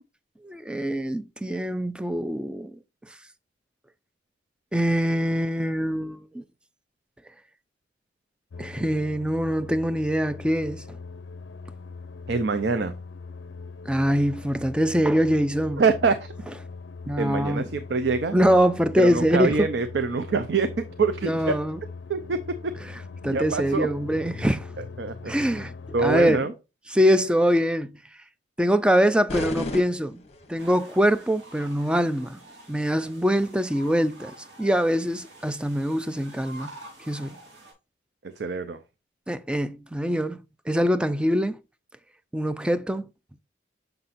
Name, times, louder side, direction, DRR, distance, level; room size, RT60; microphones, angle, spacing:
voice 1, 0.4-2.8 4.7-6.4 8.6-10.8 13.9-15.8 17.1-17.7 18.3-19.7 21.2-21.8 23.2-24.7 25.3-25.7 26.0-26.4 26.9-28.0 28.6-30.2 30.5-32.4 32.7-36.7 37.1-37.4 39.3-41.6 42.3-43.0, equal, 5° right, 0.3 m, -23 dB
sound 1, 8.5-26.4, left 4 dB, 80° left, 0.5 m, -41 dB
voice 2, 12.3-12.9 15.8-16.3 17.2-18.4 19.0-20.7 21.0-21.6 22.1-22.7 23.3-23.9 25.0-25.3 25.9-26.5 38.4-38.8, right 4 dB, 65° right, 0.5 m, -25 dB
sound 2, 29.3-30.8, left 2 dB, 35° left, 0.9 m, -33 dB
sound 3, 30.6-37.7, right 2 dB, 90° right, 3.6 m, -47 dB
6.7 x 5.7 x 2.5 m
head